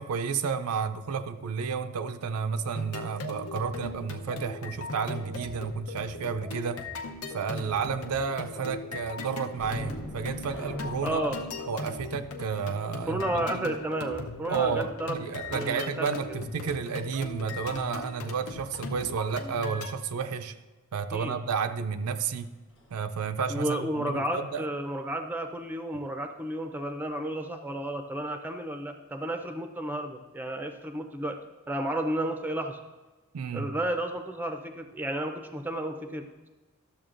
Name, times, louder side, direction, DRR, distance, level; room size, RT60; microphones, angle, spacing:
voice 1, 0.0-6.8 7.3-11.4 11.7-13.7 14.5-20.6 20.9-22.5 22.9-24.7 33.3-33.7, right 6 dB, 80° right, 9 dB, 0.4 m, -31 dB
sound 1, 2.8-19.9, left 2 dB, 70° left, 0.7 m, -39 dB
sound 2, 9.5-14.9 22.2-22.4 22.8-22.9, left 1 dB, 55° left, 1.2 m, -42 dB
voice 2, 11.0-11.4 13.1-15.2 15.5-16.1 21.1-21.4 23.5-31.4 31.7-32.8 33.5-36.5, right 1 dB, 10° right, 5 dB, 0.4 m, -32 dB
12.0 x 7.1 x 2.5 m, 1.2 s
head